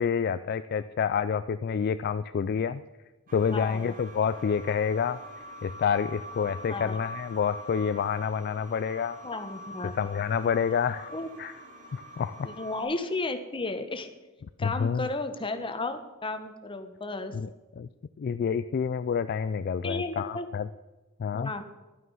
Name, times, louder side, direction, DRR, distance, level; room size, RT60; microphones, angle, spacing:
voice 1, 0.0-2.8 3.3-5.2 5.6-9.2 9.9-11.1 11.4-11.6 11.9-12.5 14.6-15.1 17.3-17.5 17.8-17.9 18.2-20.7 21.2-21.5, left 6 dB, 45° left, 12 dB, 0.3 m, -28 dB
sound 1, 3.3-12.8, equal, 40° right, 3.0 m, -44 dB
voice 2, 3.5-3.9 6.7-7.0 9.2-9.9 11.1-11.3 12.4-14.1 14.6-17.4 19.8-20.5 21.3-21.6, left 2 dB, 25° left, 8 dB, 1.0 m, -33 dB
11.5 x 9.3 x 5.5 m, 1.1 s
head